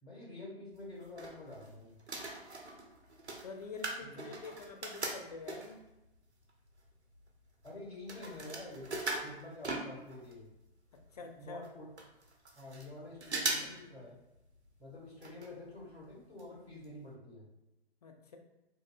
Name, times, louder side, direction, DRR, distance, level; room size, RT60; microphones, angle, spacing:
voice 1, 0.0-2.0 4.0-4.5 7.6-8.9 9.2-10.5 11.4-11.9 12.5-14.2 14.8-17.5, left 2 dB, 70° left, -5 dB, 1.4 m, -48 dB
sound 1, 0.8-1.7 2.0-5.9 6.5-6.6 6.8-10.4 10.7-10.8 11.0-11.1 11.6-11.7 12.0-12.9 13.2-13.8 14.1-14.2 15.2-15.5 15.8-15.9 16.4-16.5 16.8-16.9, right 2 dB, 80° right, 0.6 m, -40 dB
voice 2, 3.4-5.8 11.1-11.7 18.0-18.4, left 4 dB, 40° left, 4 dB, 0.4 m, -47 dB
2.6 x 2.5 x 2.3 m, 0.92 s
figure-of-eight pair, 125°, 33 cm